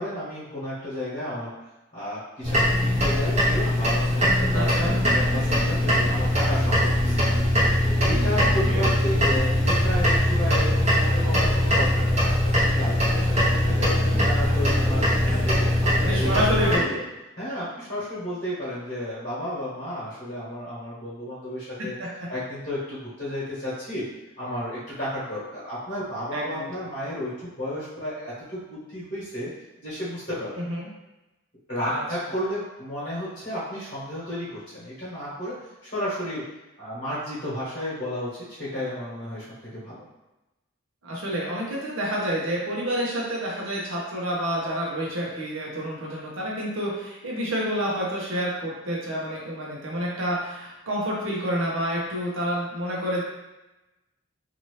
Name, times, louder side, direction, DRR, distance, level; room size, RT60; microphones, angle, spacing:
voice 1, 0.0-1.5 1.9-7.2 8.0-15.0 15.4-17.0 17.4-21.9 22.3-24.0 24.4-29.5 29.8-30.5 31.7-36.4 36.8-40.0, left 1 dB, 40° left, -11 dB, 1.2 m, -32 dB
sound 1, 2.4-16.8, left 1 dB, 30° right, 0.9 m, -21 dB
voice 2, 4.5-4.9 8.7-8.9 14.6-14.7 16.0-16.8 22.0-22.1 26.3-26.7 30.5-30.9 31.9-32.4 41.0-53.2, equal, 70° right, -4 dB, 0.8 m, -28 dB
2.8 x 2.6 x 3.1 m, 1.0 s
head